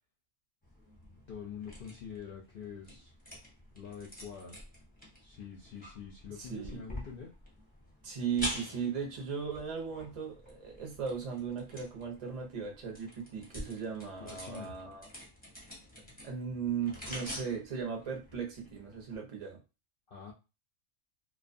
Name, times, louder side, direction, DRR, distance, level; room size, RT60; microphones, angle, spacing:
sound 1, 0.6-19.2, left 1 dB, 10° left, 0.6 m, -47 dB
voice 1, 1.3-3.1 3.7-4.6 5.2-7.3 14.2-14.7 16.0-16.2 20.1-20.3, left 7 dB, 65° left, -2 dB, 0.5 m, -45 dB
voice 2, 6.4-6.8 8.0-15.1 16.2-19.6, right 6 dB, 40° right, 0 dB, 0.5 m, -37 dB
2.4 x 2.2 x 2.5 m, 0.29 s
omnidirectional pair, 1.4 m